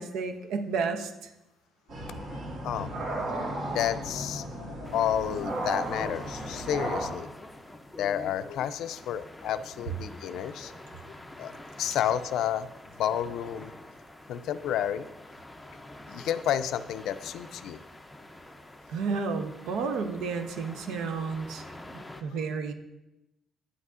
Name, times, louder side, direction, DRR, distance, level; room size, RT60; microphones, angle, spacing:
voice 1, 0.0-1.3 10.3-10.4 18.9-21.6 21.9-22.7, right 5 dB, 85° right, 7 dB, 0.7 m, -32 dB
sound 1, 1.9-7.1, right 1 dB, 55° right, 1.8 m, -34 dB
voice 2, 2.2-3.0 3.6-7.3 8.0-10.7 11.4-11.5 11.8-12.7 13.0-13.7 14.3-15.1 16.1-17.8 22.0-22.2, left 10 dB, 75° left, 13 dB, 0.3 m, -31 dB
Sea at night, 4.8-22.2, left 1 dB, 5° left, 0.5 m, -47 dB
9.6 x 8.2 x 2.4 m, 0.93 s
cardioid pair, 160°, 0 cm